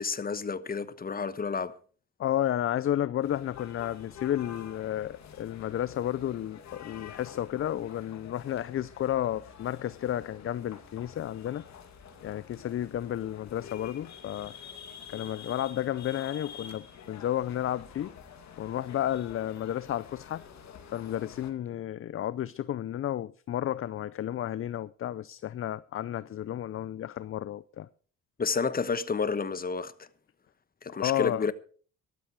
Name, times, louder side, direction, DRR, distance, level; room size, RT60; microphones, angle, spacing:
voice 1, 0.0-1.7 28.4-30.1 30.8-31.5, left 5 dB, 30° left, 1.1 m, -30 dB
voice 2, 2.2-11.6 12.2-14.5 15.1-18.1 18.6-20.4 20.9-27.9 30.9-31.5, left 11 dB, 45° left, 0.5 m, -32 dB
sound 1, 3.2-21.5, left 7 dB, 65° left, 2.4 m, -48 dB
13.0 x 12.5 x 4.6 m
cardioid pair, 90°, 30 cm